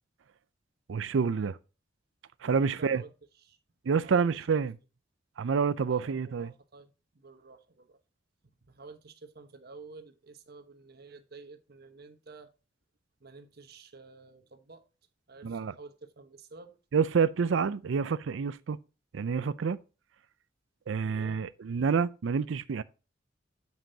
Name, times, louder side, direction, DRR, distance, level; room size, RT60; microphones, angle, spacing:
voice 1, 0.9-1.6 2.4-3.0 3.9-4.7 5.4-6.5 15.4-15.7 16.9-18.8 19.1-19.8 20.9-22.8, right 6 dB, 80° right, 0.4 m, -28 dB
voice 2, 2.5-3.1 3.4-3.6 4.0-4.6 5.9-8.0 8.4-12.5 13.2-14.8 15.3-16.8 21.0-21.4, right 3 dB, 55° right, 1.1 m, -51 dB
9.0 x 7.4 x 2.7 m
head